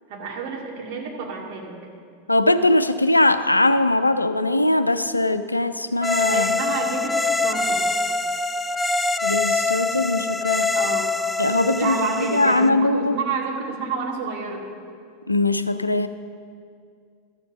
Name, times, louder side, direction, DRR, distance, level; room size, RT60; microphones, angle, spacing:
voice 1, 0.1-1.8 6.3-7.8 10.7-11.2 11.7-14.7, right 4 dB, 50° right, 0 dB, 2.1 m, -29 dB
voice 2, 2.3-6.6 9.2-10.7 11.4-13.2 15.3-16.1, left 2 dB, 85° left, 12 dB, 0.4 m, -21 dB
sound 1, 6.0-12.7, left 3 dB, 10° left, 0.4 m, -24 dB
12.5 x 7.8 x 6.4 m, 2.3 s
figure-of-eight pair, 90°, 0 cm